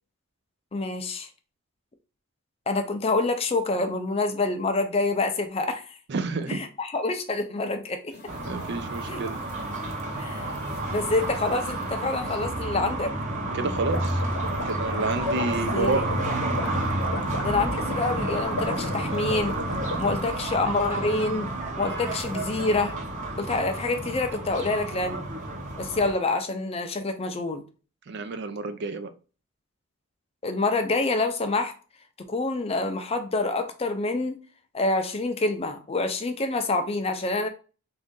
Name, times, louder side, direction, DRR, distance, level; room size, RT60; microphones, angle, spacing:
voice 1, 0.7-1.3 2.7-5.9 6.5-8.1 9.1-9.2 10.2-10.5 10.9-13.1 15.5-16.0 17.4-19.6 20.0-21.5 21.8-22.9 23.4-25.2 25.8-27.6 30.4-31.7 32.3-34.4 34.7-37.5, left 3 dB, 25° left, 0.4 m, -27 dB
voice 2, 6.1-6.6 8.4-9.4 13.5-14.2 14.6-16.0 28.1-29.1, right 3 dB, 50° right, 0.4 m, -29 dB
sound 1, 8.1-12.9, left 2 dB, 45° left, 0.8 m, -47 dB
sound 2, 8.3-26.1, right 1 dB, 35° right, 0.8 m, -30 dB
sound 3, 13.5-20.3, left 3 dB, 90° left, 0.8 m, -36 dB
3.7 x 2.6 x 3.5 m
head